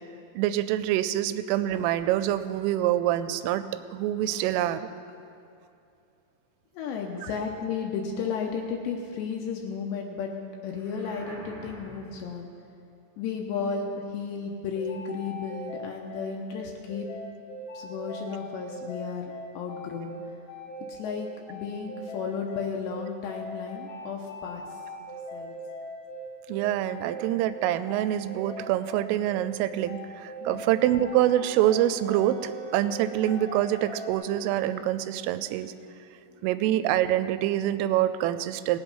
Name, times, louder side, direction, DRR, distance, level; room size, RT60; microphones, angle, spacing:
voice 1, 0.4-4.9 7.2-7.3 26.5-35.7 36.4-38.8, right 13 dB, 90° right, 13 dB, 3.1 m, -26 dB
voice 2, 6.7-10.3 10.6-12.5 13.2-17.1 17.7-19.3 19.6-20.2 20.9-24.8 25.3-25.5 30.4-30.7, left 5 dB, 80° left, 1 dB, 2.7 m, -33 dB
sound 1, 10.7-12.3, right 1 dB, 40° right, 0.6 m, -45 dB
sound 2, 14.7-34.1, equal, 65° left, 2.1 m, -40 dB
Wind instrument woodwind instrument, 31.1-34.9, equal, 65° right, 2.9 m, -48 dB
18.5 x 8.2 x 5.4 m, 2.6 s
omnidirectional pair, 5.7 m